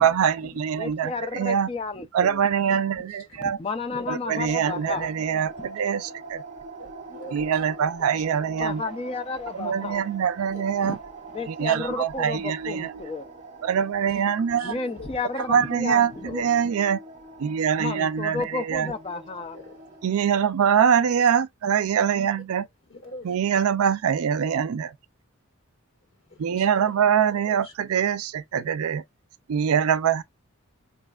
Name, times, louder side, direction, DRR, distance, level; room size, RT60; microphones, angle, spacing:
voice 1, 0.0-1.7 2.1-3.6 4.1-6.4 7.3-8.8 9.5-11.0 11.4-13.0 13.6-14.8 15.5-17.0 17.4-18.9 20.0-22.7 23.2-24.9 26.4-29.0 29.5-30.2, right 8 dB, 80° right, 0.4 m, -24 dB
voice 2, 0.8-2.3 3.4-5.1 8.6-10.0 10.8-11.0 11.3-13.2 14.6-16.4 17.8-19.6, left 4 dB, 25° left, 0.4 m, -32 dB
voice 3, 3.9-4.8 6.8-7.6 8.1-8.2 10.5-10.9 11.7-11.8 14.6-15.3 18.8-19.2 19.5-20.0 22.9-23.3 26.3-26.9 27.6-27.7, left 2 dB, 60° left, 1.4 m, -44 dB
sound 1, 4.3-20.2, right 3 dB, 30° right, 0.6 m, -43 dB
4.1 x 3.1 x 2.3 m
head